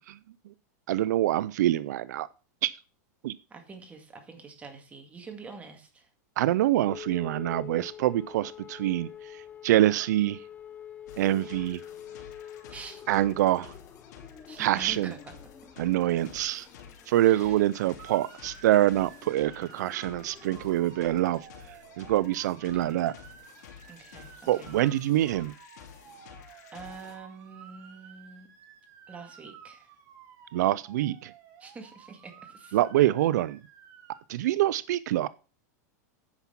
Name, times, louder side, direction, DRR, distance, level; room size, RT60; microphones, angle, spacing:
voice 1, 0.9-2.3 2.6-2.7 3.2-3.3 6.4-10.4 11.2-11.8 13.1-13.7 14.6-15.1 15.8-16.7 17.1-23.1 24.5-25.5 30.5-31.3 32.7-33.6 34.3-35.3, right 14 dB, 75° right, 0.4 m, -25 dB
voice 2, 3.5-6.1 12.7-13.0 14.5-15.2 17.2-17.6 22.7-23.0 23.9-24.8 26.3-26.5 26.7-28.5 29.1-29.9 31.6-32.8, right 4 dB, 15° right, 2.0 m, -46 dB
sound 1, 6.9-20.7, left 9 dB, 15° left, 0.6 m, -47 dB
sound 2, 11.1-27.2, left 7 dB, 70° left, 2.8 m, -51 dB
Motor vehicle (road) / Siren, 18.0-34.2, right 7 dB, 35° right, 2.0 m, -52 dB
9.7 x 5.8 x 5.8 m
supercardioid pair, 150°, 9 cm